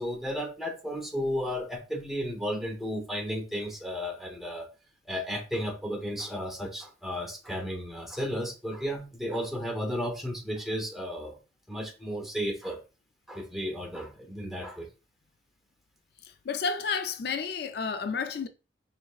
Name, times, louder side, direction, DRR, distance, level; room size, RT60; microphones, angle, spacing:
voice 1, 0.0-4.7 5.1-11.4 11.7-12.8 13.3-14.9, equal, ahead, 0.7 m, -33 dB
voice 2, 16.5-18.5, left 5 dB, 55° left, 0.3 m, -31 dB
4.6 x 3.4 x 2.3 m
head